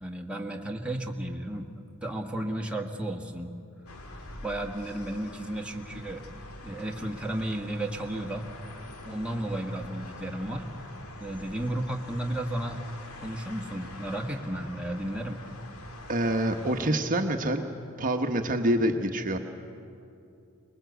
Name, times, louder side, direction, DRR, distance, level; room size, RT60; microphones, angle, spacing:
voice 1, 0.0-1.7 2.0-3.5 4.3-6.2 6.6-8.4 9.0-10.7 11.2-12.8 13.2-15.4, right 1 dB, 5° right, 0 dB, 1.6 m, -33 dB
sound 1, 3.9-16.9, left 2 dB, 80° left, 2.0 m, -45 dB
voice 2, 16.1-17.7 18.0-19.4, right 1 dB, 40° right, 4 dB, 1.1 m, -26 dB
24.5 x 21.0 x 8.1 m, 2.6 s
head